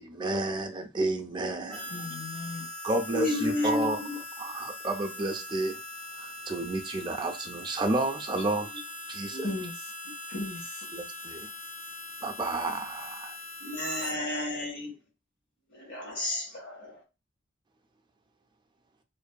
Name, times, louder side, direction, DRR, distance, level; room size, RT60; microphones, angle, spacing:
voice 1, 0.0-1.8 2.8-4.0 4.4-5.8 6.2-8.7 9.1-9.6 10.9-11.5 12.2-13.4, right 2 dB, 25° right, 0.4 m, -31 dB
voice 2, 1.3-1.7 3.1-4.2 9.3-9.4 13.6-14.9 15.7-17.0, left 2 dB, 80° left, 1.4 m, -32 dB
Harmonica, 1.7-14.1, left 2 dB, 5° left, 1.0 m, -41 dB
voice 3, 1.9-2.7 3.4-3.6 9.4-9.9 10.3-10.9, left 2 dB, 65° left, 1.0 m, -37 dB
2.6 x 2.5 x 2.2 m
head